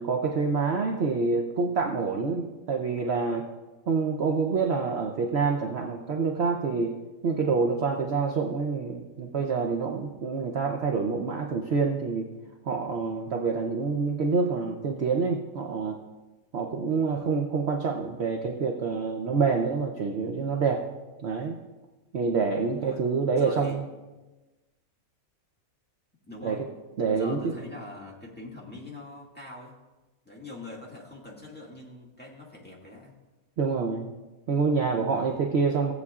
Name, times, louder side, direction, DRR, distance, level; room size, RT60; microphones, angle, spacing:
voice 1, 0.0-3.4 3.9-7.0 7.2-12.3 12.6-16.0 16.5-20.8 21.2-21.6 22.1-23.9 26.4-26.6 27.0-27.5 33.6-34.1 34.5-35.9, right 4 dB, 55° right, 1 dB, 0.9 m, -27 dB
voice 2, 17.0-17.3 22.7-23.0 23.3-23.8 26.2-26.6 27.1-29.8 30.3-33.2 35.1-35.5, left 2 dB, 5° left, -5 dB, 1.8 m, -43 dB
16.5 x 8.2 x 2.4 m, 1.1 s
omnidirectional pair, 1.5 m